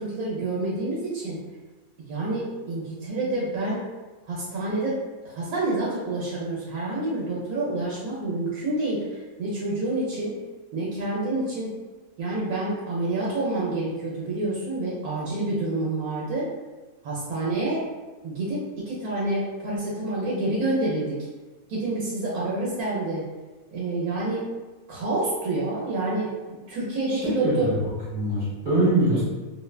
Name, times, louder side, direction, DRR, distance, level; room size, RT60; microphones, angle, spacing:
voice 1, 0.0-1.4 2.1-3.8 4.3-5.0 5.2-10.3 10.7-11.7 12.2-16.5 17.0-17.8 18.2-21.2 21.7-23.2 23.7-24.4 24.9-27.7, right 2 dB, 90° right, -6 dB, 1.1 m, -28 dB
voice 2, 27.1-27.8 28.1-29.2, right 1 dB, 35° right, -9 dB, 1.0 m, -23 dB
2.7 x 2.1 x 2.3 m, 1.2 s
omnidirectional pair, 1.5 m